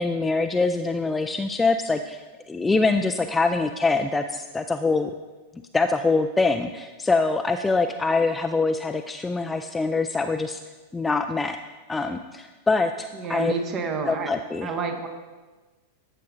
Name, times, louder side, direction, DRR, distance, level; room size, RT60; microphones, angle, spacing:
voice 1, 0.0-5.1 5.7-10.6 10.9-11.6 11.9-13.5 14.1-14.7, left 3 dB, 10° left, 7 dB, 0.3 m, -24 dB
voice 2, 13.2-14.3 14.6-15.1, right 4 dB, 35° right, 5 dB, 0.8 m, -29 dB
12.5 x 7.5 x 2.6 m, 1.3 s
figure-of-eight pair, 90°, 0 cm